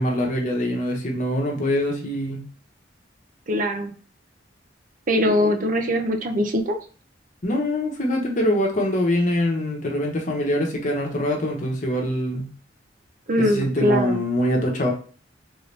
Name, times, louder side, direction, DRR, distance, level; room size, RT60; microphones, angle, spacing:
voice 1, 0.0-2.4 7.4-12.5 13.4-14.9, left 1 dB, 45° left, 0 dB, 1.0 m, -24 dB
voice 2, 3.5-3.9 5.1-6.8 13.3-14.2, equal, 45° right, 4 dB, 0.6 m, -22 dB
3.9 x 2.7 x 3.3 m, 0.40 s
head